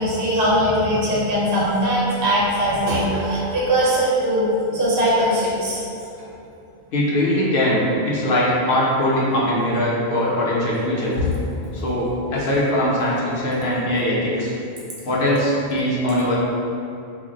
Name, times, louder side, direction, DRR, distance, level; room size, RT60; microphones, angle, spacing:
voice 1, 0.0-5.8 10.9-11.7, equal, 60° right, -7 dB, 0.9 m, -21 dB
voice 2, 6.9-11.1 11.7-14.5 15.0-16.4, left 1 dB, 60° left, -6 dB, 0.8 m, -21 dB
2.5 x 2.1 x 3.9 m, 2.7 s
omnidirectional pair, 1.1 m